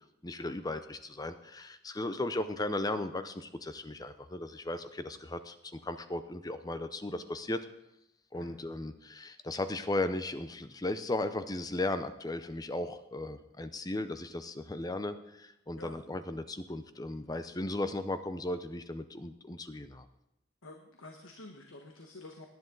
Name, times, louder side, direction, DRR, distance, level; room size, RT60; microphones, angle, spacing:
voice 1, 0.2-7.6 8.3-20.1, left 2 dB, 20° left, 11 dB, 0.6 m, -36 dB
voice 2, 20.6-22.5, left 2 dB, 70° left, 2 dB, 1.4 m, -49 dB
18.5 x 10.5 x 3.9 m, 0.86 s
head